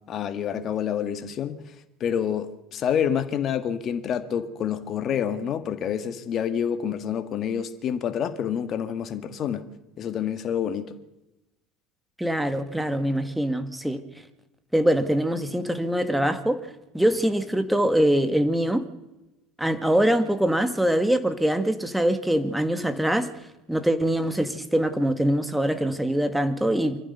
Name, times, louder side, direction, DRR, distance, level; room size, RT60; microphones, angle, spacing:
voice 1, 0.1-1.6 2.0-9.6 10.0-11.0, left 8 dB, 40° left, 1.7 m, -28 dB
voice 2, 12.2-14.0 14.7-16.6 16.9-18.8 19.6-23.3 23.7-27.0, right 1 dB, 5° right, 2.0 m, -23 dB
25.5 x 14.5 x 6.9 m
figure-of-eight pair, 65°, 0 cm